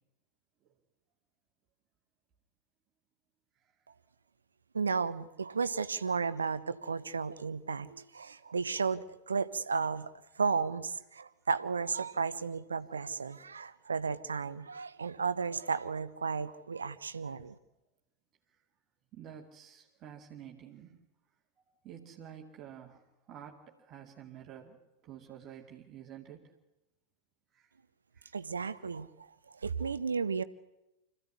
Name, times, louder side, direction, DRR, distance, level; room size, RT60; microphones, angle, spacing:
voice 1, 4.7-17.6 28.3-30.4, right 5 dB, 75° right, 14 dB, 0.9 m, -34 dB
voice 2, 19.1-21.0 21.8-26.5 27.5-27.7 28.1-28.4, right 9 dB, 30° right, 0 dB, 2.3 m, -50 dB
26.0 x 15.5 x 9.6 m, 0.96 s
figure-of-eight pair, 90°, 0 cm